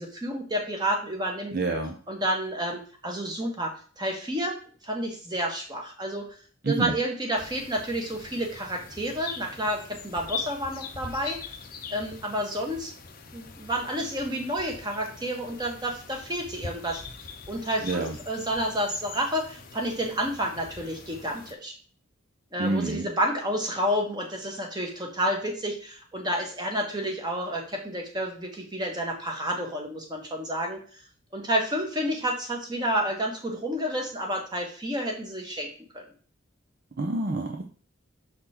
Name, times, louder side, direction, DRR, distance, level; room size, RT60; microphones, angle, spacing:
voice 1, 0.0-1.6 2.1-3.7 4.0-4.6 4.8-6.3 6.7-11.4 11.9-12.9 13.3-17.0 17.5-21.7 22.5-30.8 31.3-35.7 35.9-36.0, equal, 20° right, 1 dB, 1.4 m, -30 dB
voice 2, 1.5-2.0 6.6-7.0 17.8-18.2 22.6-23.1 37.0-37.7, right 2 dB, 45° right, 3 dB, 0.6 m, -28 dB
sound 1, 7.4-21.5, left 5 dB, 45° left, 0.7 m, -42 dB
6.7 x 4.3 x 4.3 m, 0.41 s
head